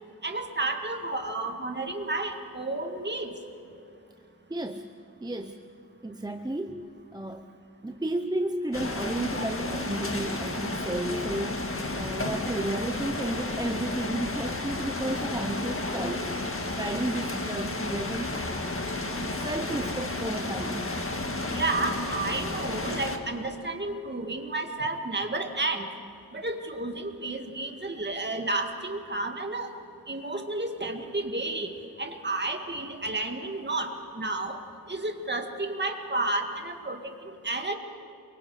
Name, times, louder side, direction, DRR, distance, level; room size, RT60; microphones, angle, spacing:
voice 1, 0.2-3.3 21.5-25.9 26.3-29.7 30.1-31.7 32.0-34.6 34.9-37.7, right 2 dB, 30° right, 4 dB, 1.9 m, -31 dB
voice 2, 4.5-4.9 5.2-5.6 6.0-7.5 7.8-16.3 16.8-18.5 19.4-21.0, right 1 dB, 10° right, 6 dB, 0.7 m, -33 dB
sound 1, 8.7-23.2, left 2 dB, 35° left, 1.7 m, -32 dB
28.5 x 23.0 x 5.0 m, 2.7 s
wide cardioid pair, 100°, 37 cm